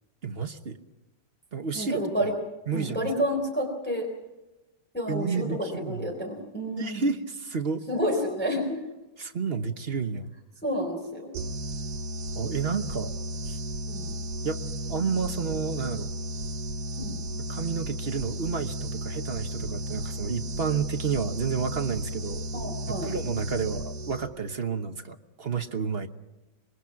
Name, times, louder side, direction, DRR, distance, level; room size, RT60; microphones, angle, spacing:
voice 1, 0.2-0.8 1.5-2.3 2.7-3.1 5.1-6.1 6.8-7.8 9.2-10.3 12.3-13.1 13.5-13.6 14.4-14.6 14.9-16.1 17.5-22.5 22.9-26.1, right 5 dB, 40° right, 7 dB, 1.1 m, -30 dB
voice 2, 1.7-2.3 2.7-4.1 4.9-7.0 7.9-8.8 10.6-11.3 13.9-14.1 17.0-17.2 22.5-23.1, equal, 5° left, 0 dB, 3.9 m, -30 dB
sound 1, 11.3-24.5, equal, 60° right, 1.4 m, -34 dB
26.0 x 22.0 x 5.9 m, 1.0 s
omnidirectional pair, 2.1 m